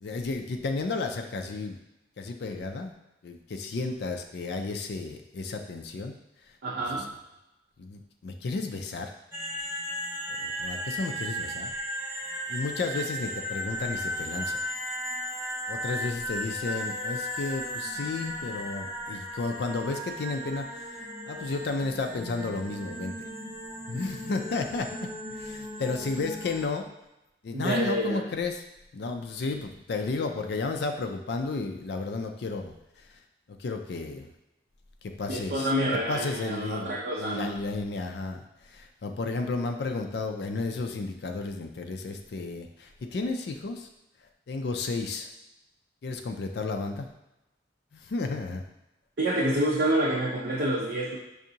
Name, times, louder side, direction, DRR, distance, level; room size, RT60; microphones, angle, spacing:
voice 1, 0.0-1.8 2.2-2.9 3.2-6.1 7.8-9.1 10.3-11.7 12.5-14.6 15.7-21.0 21.3-23.1 23.9-26.9 27.4-28.6 28.9-32.7 33.6-34.3 35.0-35.7 36.1-38.4 38.7-43.9 44.5-45.3 46.0-47.1 47.9-48.6, left 3 dB, 65° left, 5 dB, 0.4 m, -32 dB
voice 2, 6.6-7.1 27.5-28.2 35.3-37.5 49.2-51.2, right 1 dB, 70° right, -5 dB, 0.6 m, -28 dB
sound 1, 9.3-26.7, equal, 10° right, 0.5 m, -36 dB
4.8 x 2.6 x 2.8 m, 0.94 s
head